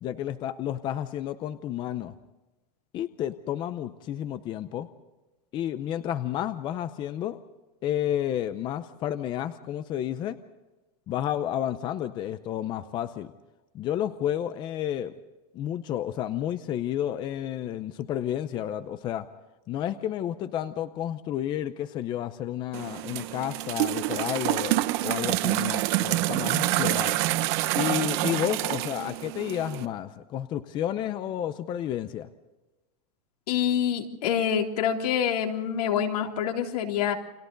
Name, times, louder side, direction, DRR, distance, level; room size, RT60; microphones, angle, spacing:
voice 1, 0.0-2.2 2.9-4.9 5.5-7.4 7.8-10.4 11.1-13.3 13.7-15.1 15.5-19.3 19.7-27.2 27.8-32.3, left 11 dB, 25° left, 12 dB, 0.6 m, -31 dB
sound 1, 22.7-29.9, right 17 dB, 45° right, 0.9 m, -27 dB
voice 2, 33.5-37.1, left 8 dB, 85° left, 2 dB, 3.5 m, -26 dB
29.5 x 23.5 x 3.9 m, 1.1 s
supercardioid pair, 165°, 19 cm